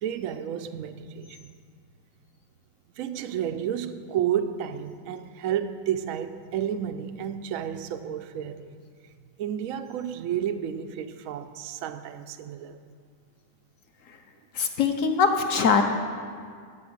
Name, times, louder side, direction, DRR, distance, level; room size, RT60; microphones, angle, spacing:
voice 1, 0.0-1.5 3.0-8.8 9.4-12.8, right 9 dB, 85° right, 0.7 m, -31 dB
voice 2, 14.5-15.8, left 5 dB, 60° left, 0.9 m, -22 dB
12.0 x 5.5 x 7.8 m
omnidirectional pair, 2.0 m